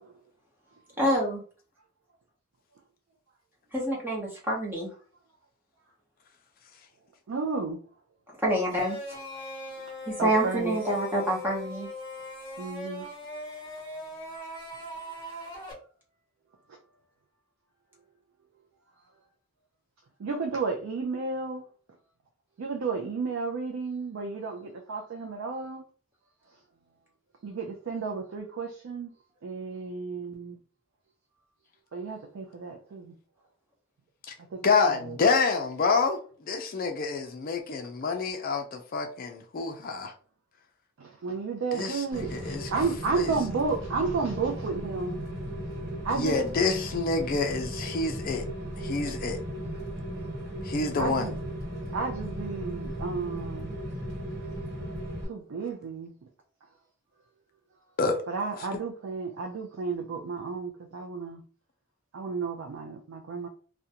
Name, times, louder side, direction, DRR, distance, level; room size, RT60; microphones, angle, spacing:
voice 1, 1.0-1.4 3.7-4.9 8.4-9.2 10.1-11.9, right 1 dB, 10° right, 0.7 m, -27 dB
voice 2, 7.3-7.8 10.2-10.8 12.6-13.1 20.2-21.6 22.6-25.8 27.4-29.1 29.4-30.6 31.9-33.1 34.5-35.0 41.0-45.2 46.0-46.3 51.0-51.3 51.9-53.8 55.3-56.1 58.3-61.4 62.1-63.5, right 4 dB, 75° right, 0.4 m, -32 dB
sound 1, 8.7-15.7, left 1 dB, 20° left, 0.8 m, -40 dB
voice 3, 34.6-40.1 41.7-42.9 43.1-43.4 46.1-48.5 48.8-49.4 50.6-51.3 58.0-58.2 58.6-58.8, left 4 dB, 45° left, 0.4 m, -28 dB
Rain, 42.1-55.2, equal, 50° right, 1.1 m, -36 dB
2.4 x 2.1 x 2.7 m
head